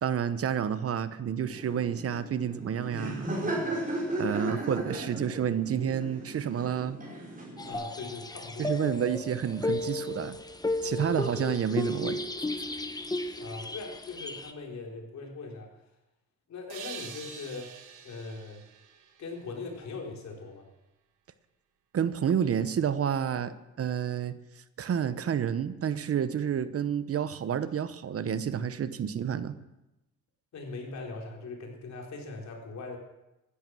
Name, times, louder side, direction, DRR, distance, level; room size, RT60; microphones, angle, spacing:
voice 1, 0.0-3.3 4.2-7.0 8.6-10.4 10.8-12.2 21.9-24.4 24.8-29.6, right 8 dB, 50° right, 13 dB, 1.0 m, -29 dB
Laughter, 1.5-7.7, right 1 dB, 30° right, 4.9 m, -36 dB
voice 2, 3.3-3.8 7.6-9.0 10.9-11.1 13.4-15.7 16.5-17.7 18.0-18.6 19.2-20.7 28.6-28.7 30.5-33.0, left 3 dB, 65° left, 1 dB, 4.0 m, -41 dB
sound 1, 7.6-14.5, left 2 dB, 15° left, 1.2 m, -34 dB
sound 2, 16.7-20.2, right 7 dB, 80° right, 1.6 m, -46 dB
16.0 x 11.5 x 6.3 m, 0.96 s
cardioid pair, 90°, 30 cm